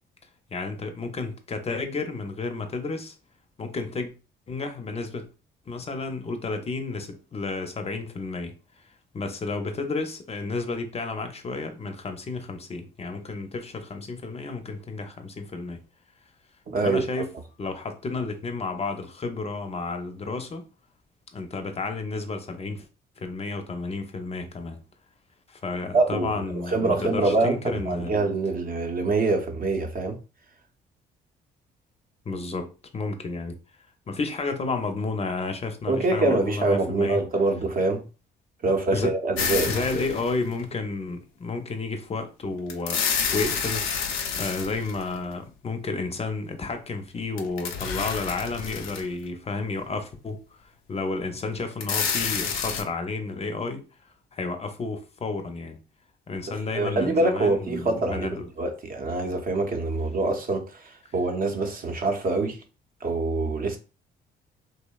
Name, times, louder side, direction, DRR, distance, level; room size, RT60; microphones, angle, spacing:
voice 1, 0.5-3.2 3.6-4.1 4.5-5.3 5.7-8.5 9.1-15.8 16.8-17.3 17.6-20.7 21.3-22.9 23.2-24.8 25.5-28.1 32.3-33.6 34.1-37.2 38.9-39.2 39.7-43.0 43.3-43.9 44.3-53.9 54.3-55.8 56.3-58.5, left 3 dB, 30° left, 0.5 m, -31 dB
voice 2, 16.7-17.2 25.9-30.2 35.9-38.0 38.6-39.8 56.5-62.6 63.0-63.8, right 3 dB, 45° right, 0.6 m, -25 dB
sound 1, 39.4-40.6 42.7-45.3 47.4-49.2 49.8-49.9 51.7-52.8, left 6 dB, 85° left, 0.5 m, -29 dB
2.7 x 2.0 x 2.2 m
supercardioid pair, 65°, 20 cm